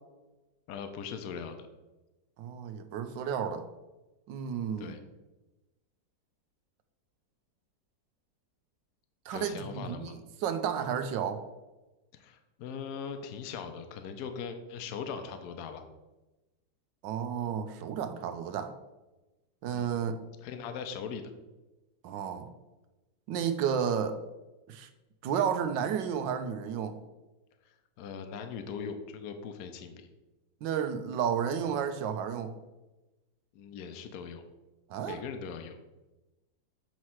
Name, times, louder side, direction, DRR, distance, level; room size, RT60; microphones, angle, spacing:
voice 1, 0.7-1.7 4.8-5.0 9.3-10.2 12.2-15.8 19.7-19.9 20.4-21.3 28.0-30.1 33.5-34.4 35.0-35.8, left 6 dB, 65° left, 7 dB, 1.1 m, -40 dB
voice 2, 2.4-3.7 4.3-5.0 9.3-10.1 10.4-11.4 17.0-18.7 19.6-20.2 22.0-22.5 23.3-24.2 24.7-24.9 25.2-27.0 30.6-32.5 34.9-35.2, right 8 dB, 90° right, 9 dB, 1.3 m, -32 dB
7.5 x 3.2 x 5.7 m, 1.1 s
omnidirectional pair, 2.0 m